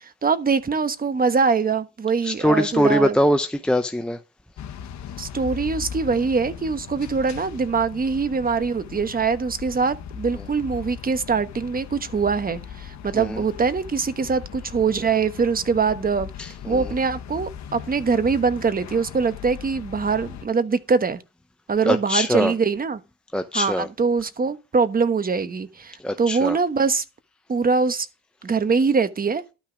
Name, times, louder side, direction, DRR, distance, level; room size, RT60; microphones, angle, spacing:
voice 1, 0.2-3.2 5.2-16.3 16.7-21.2 21.7-23.0 23.5-27.0 27.5-28.1 28.4-29.4, right 5 dB, 30° right, 1.1 m, -23 dB
voice 2, 2.2-4.2 13.1-13.4 16.4-16.9 21.9-22.5 23.3-23.9 26.0-26.6, equal, 5° left, 0.7 m, -22 dB
sound 1, 4.6-20.5, left 8 dB, 65° left, 1.4 m, -38 dB
12.0 x 6.0 x 5.0 m
cardioid pair, 90°, 30 cm